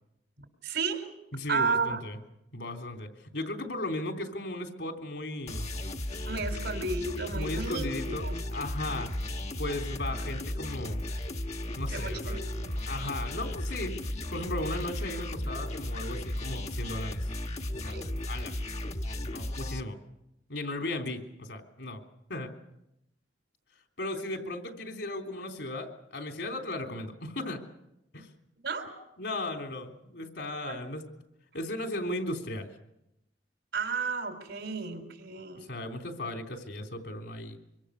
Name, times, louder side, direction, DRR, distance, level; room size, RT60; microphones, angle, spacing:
voice 1, 0.6-1.1 1.5-2.0 6.3-8.4 11.9-12.8 17.9-18.1 28.6-28.9 30.6-30.8 33.7-35.7, right 4 dB, 75° right, 6 dB, 3.9 m, -33 dB
voice 2, 1.3-2.2 2.5-5.7 7.3-8.3 8.5-9.1 9.6-11.0 11.7-12.4 12.9-17.3 17.7-18.0 18.3-18.5 19.2-20.0 20.5-22.0 22.3-22.5 24.0-27.6 28.1-28.3 29.2-31.0 31.5-32.7 35.7-37.6, left 1 dB, 75° left, 4 dB, 3.6 m, -36 dB
sound 1, 5.5-19.8, left 1 dB, 40° left, 1.2 m, -35 dB
25.0 x 24.5 x 6.6 m, 0.84 s
head